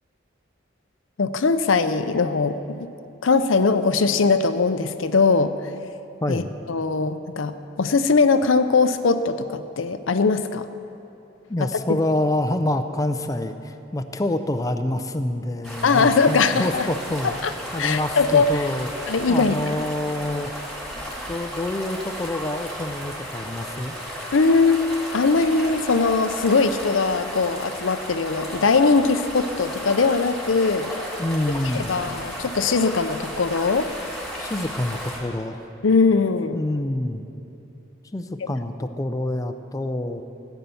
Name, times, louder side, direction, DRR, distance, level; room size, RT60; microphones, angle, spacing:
voice 1, 1.2-2.9 3.2-5.7 6.3-6.4 6.7-10.7 11.6-12.0 15.8-16.9 17.4-17.5 17.8-18.7 19.1-19.7 24.3-24.8 25.1-30.9 31.7-33.9 35.8-36.6, left 4 dB, 90° left, 10 dB, 0.6 m, -20 dB
voice 2, 6.2-6.5 11.5-17.3 17.7-20.5 21.3-23.9 31.2-31.9 34.4-35.7 36.5-37.2 38.1-40.2, left 1 dB, 20° left, 7 dB, 0.5 m, -27 dB
sound 1, 15.6-35.2, equal, ahead, 2.4 m, -34 dB
15.0 x 9.1 x 7.0 m, 2.9 s
head